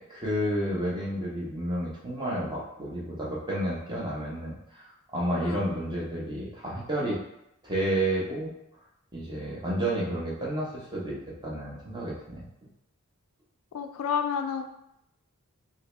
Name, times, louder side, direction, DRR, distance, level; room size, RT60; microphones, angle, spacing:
voice 1, 0.0-7.2 7.6-8.5 9.1-12.5, right 1 dB, 20° right, -5 dB, 0.8 m, -31 dB
voice 2, 13.7-14.6, left 7 dB, 70° left, 6 dB, 0.3 m, -30 dB
2.9 x 2.7 x 3.2 m, 0.82 s
head